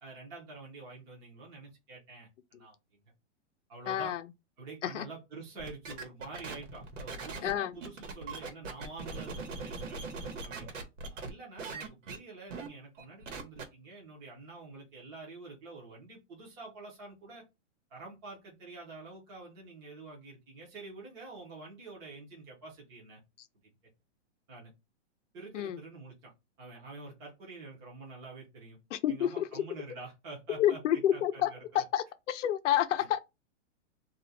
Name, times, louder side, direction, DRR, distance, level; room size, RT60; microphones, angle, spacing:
voice 1, 0.0-3.0 3.7-4.2 4.6-10.0 10.4-10.8 11.2-17.4 17.9-23.2 24.5-24.7 25.3-26.3 26.6-28.8 29.1-30.8 31.1-31.8 33.0-33.1, right 3 dB, 10° right, 0.5 m, -47 dB
voice 2, 3.9-4.2 4.9-5.0 7.4-7.7 25.5-25.8 28.9-29.4 30.6-31.5 31.7-33.2, left 11 dB, 85° left, 0.6 m, -29 dB
sound 1, 5.6-11.3 11.6-12.2 12.5-12.7 13.0-13.6, right 4 dB, 90° right, 1.1 m, -40 dB
2.4 x 2.1 x 3.9 m
supercardioid pair, 170°, 36 cm